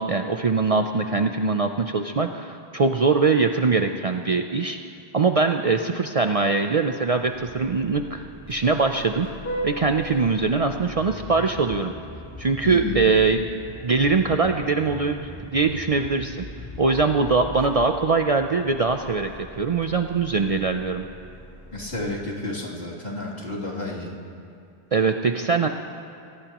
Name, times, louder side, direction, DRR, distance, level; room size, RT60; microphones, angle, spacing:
voice 1, 0.0-4.8 5.1-8.2 8.5-9.3 9.6-11.9 12.4-13.4 13.8-16.4 16.8-21.0 24.9-25.7, right 4 dB, 45° right, 6 dB, 0.5 m, -22 dB
Vehicle horn car horn honking, 7.2-22.5, equal, 15° left, 2.1 m, -39 dB
voice 2, 12.6-13.0 21.7-24.1, left 2 dB, 70° left, -6 dB, 3.1 m, -31 dB
24.0 x 18.0 x 3.0 m, 2.4 s
omnidirectional pair, 1.0 m